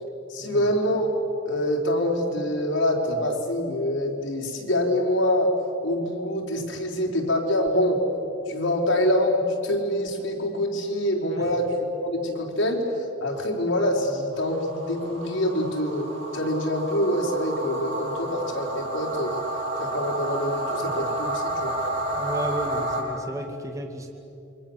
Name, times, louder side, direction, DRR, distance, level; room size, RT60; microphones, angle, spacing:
voice 1, 0.3-1.1 1.5-5.5 5.8-8.0 8.5-11.7 12.0-12.8 13.2-16.1 16.3-19.4 19.8-21.8, left 1 dB, 75° left, 0 dB, 4.4 m, -25 dB
sound 1, 14.3-23.0, right 1 dB, 75° right, 7.6 m, -31 dB
voice 2, 22.1-24.1, right 1 dB, 15° right, 2 dB, 2.4 m, -33 dB
28.5 x 24.5 x 7.3 m, 2.9 s
head